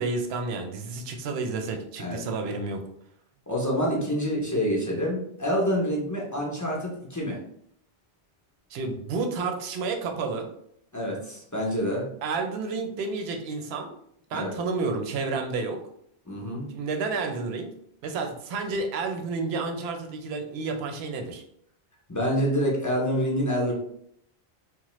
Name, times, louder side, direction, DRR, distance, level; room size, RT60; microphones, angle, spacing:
voice 1, 0.0-2.8 8.7-10.5 12.2-13.9 14.3-15.8 16.7-17.7 18.0-21.4, right 4 dB, 75° right, 4 dB, 0.8 m, -30 dB
voice 2, 3.5-7.4 10.9-12.0 14.3-14.5 16.3-16.7 22.1-23.7, equal, 20° left, -4 dB, 0.5 m, -27 dB
2.9 x 2.0 x 3.0 m, 0.69 s
omnidirectional pair, 1.1 m